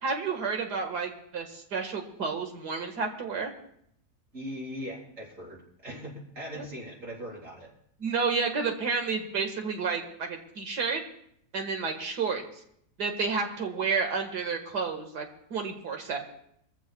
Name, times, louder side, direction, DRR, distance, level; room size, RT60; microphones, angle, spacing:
voice 1, 0.0-3.5 6.5-6.7 8.0-11.0 11.5-12.4 13.0-15.3 15.5-16.2, right 5 dB, 90° right, 4 dB, 2.2 m, -30 dB
voice 2, 4.3-7.7, equal, 50° right, -5 dB, 4.6 m, -40 dB
22.5 x 15.0 x 2.3 m, 0.71 s
omnidirectional pair, 1.7 m